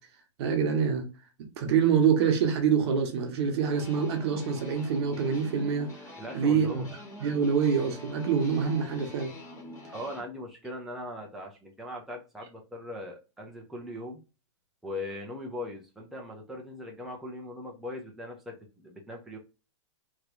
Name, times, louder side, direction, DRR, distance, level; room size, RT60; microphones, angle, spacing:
voice 1, 0.4-1.1 1.6-5.9 6.3-6.9 7.2-9.3, right 6 dB, 55° right, 1.1 m, -25 dB
sound 1, 3.6-10.2, left 2 dB, 20° left, 1.3 m, -45 dB
voice 2, 6.2-6.9 9.9-14.2 14.8-19.4, left 1 dB, ahead, 0.7 m, -40 dB
3.1 x 3.0 x 2.6 m
hypercardioid pair, 135°, 16 cm